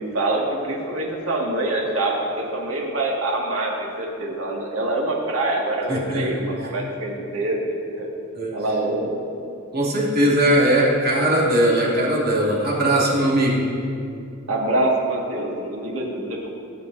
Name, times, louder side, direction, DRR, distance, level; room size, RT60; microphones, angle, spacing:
voice 1, 0.0-8.1 8.5-9.2 14.5-16.5, right 2 dB, 80° right, -2 dB, 2.1 m, -25 dB
voice 2, 5.9-6.3 8.3-8.5 9.7-13.6, right 1 dB, 50° right, -5 dB, 2.6 m, -19 dB
22.5 x 7.5 x 2.7 m, 2.5 s
head